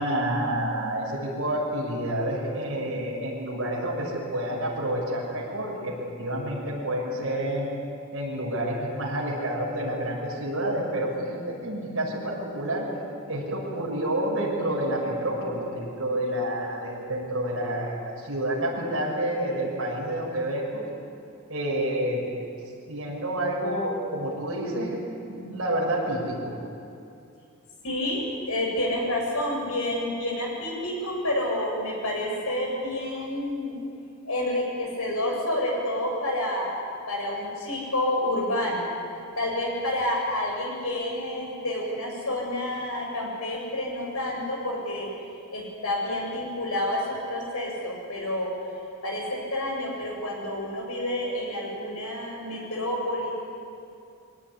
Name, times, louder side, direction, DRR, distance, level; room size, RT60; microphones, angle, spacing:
voice 1, 0.0-7.7 8.1-12.8 13.3-20.8 21.5-22.2 22.9-25.0 25.2-26.5, right 1 dB, 65° right, -5 dB, 6.6 m, -29 dB
voice 2, 27.8-33.8 34.2-36.7 37.1-38.9 39.4-45.1 45.5-48.5 49.0-53.3, left 1 dB, 90° left, -1 dB, 7.7 m, -29 dB
23.5 x 18.0 x 9.9 m, 2.5 s
head